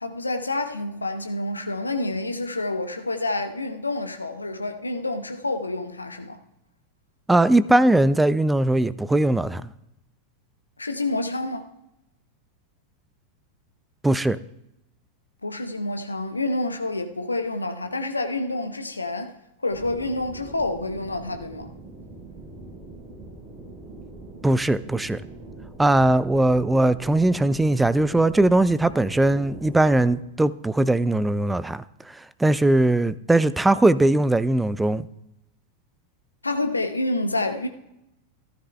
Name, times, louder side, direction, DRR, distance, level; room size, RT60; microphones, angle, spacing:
voice 1, 0.0-6.4 10.8-11.7 15.4-19.3 19.6-21.7 36.4-37.7, left 2 dB, 80° left, 0.8 m, -28 dB
voice 2, 7.3-9.7 14.0-14.4 24.4-25.2 25.8-35.1, right 2 dB, 5° right, 0.4 m, -20 dB
sound 1, 19.7-30.2, right 2 dB, 25° right, 3.5 m, -42 dB
14.5 x 13.0 x 2.2 m
figure-of-eight pair, 90°, 0 cm